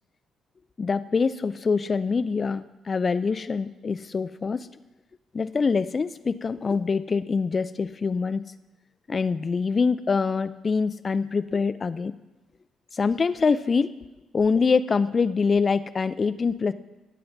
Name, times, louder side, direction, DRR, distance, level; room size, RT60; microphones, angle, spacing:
voice 1, 0.8-4.7 5.3-8.4 9.1-12.1 12.9-13.9 14.3-16.7, left 5 dB, 35° left, 13 dB, 0.5 m, -24 dB
22.5 x 7.6 x 2.7 m, 1.1 s
figure-of-eight pair, 45°, 0 cm